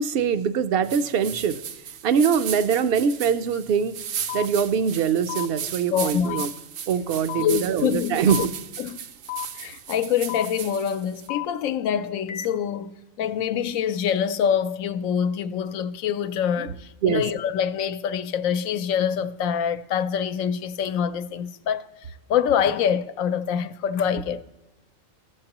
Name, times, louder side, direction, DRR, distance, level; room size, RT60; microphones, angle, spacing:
voice 1, 0.0-1.6 2.0-4.0 4.3-6.5 6.9-8.5 16.6-16.7 17.0-17.2, right 7 dB, 60° right, 0.6 m, -23 dB
sound 1, 0.8-11.3, right 8 dB, 80° right, 1.0 m, -36 dB
sound 2, 4.3-4.5 5.3-5.5 6.3-6.5 7.3-7.5 8.3-8.5 9.3-9.5 10.3-10.5 11.3-11.5 12.3-12.5, left 16 dB, 55° left, 0.6 m, -31 dB
voice 2, 5.9-6.4 7.4-8.5 8.8-9.1 9.5-24.5, left 8 dB, 85° left, 1.0 m, -25 dB
15.5 x 6.6 x 2.9 m
omnidirectional pair, 1.4 m